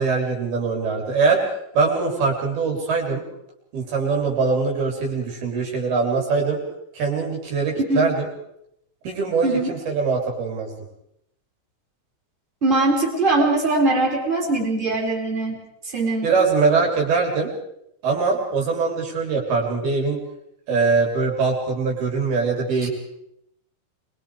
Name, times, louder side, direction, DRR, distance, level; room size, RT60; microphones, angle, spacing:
voice 1, 0.0-1.5 1.7-3.2 3.7-6.6 6.9-8.3 9.0-10.7 16.2-17.5 18.0-20.2 20.7-22.9, right 4 dB, 50° right, 0 dB, 5.1 m, -22 dB
voice 2, 9.4-9.7 12.6-15.6 15.9-16.3 22.8-22.9, right 2 dB, 10° right, -1 dB, 3.5 m, -21 dB
26.5 x 22.0 x 4.9 m, 0.77 s
omnidirectional pair, 5.9 m